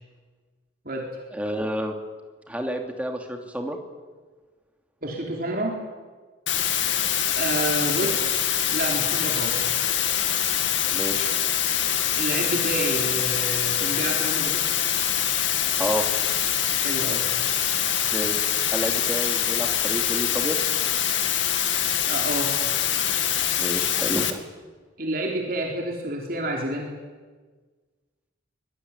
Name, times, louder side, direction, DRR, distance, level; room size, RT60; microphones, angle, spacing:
voice 1, 1.4-1.9 2.5-3.8 10.9-11.3 15.8-16.0 18.1-20.6 23.6-24.4, equal, 5° right, 3 dB, 2.9 m, -29 dB
voice 2, 5.0-5.8 7.4-9.7 12.2-14.6 16.8-17.3 22.1-22.5 25.0-26.9, right 1 dB, 50° right, 0 dB, 4.0 m, -29 dB
sound 1, 6.5-24.3, left 10 dB, 75° left, 2.3 m, -24 dB
24.5 x 22.0 x 9.9 m, 1.4 s
head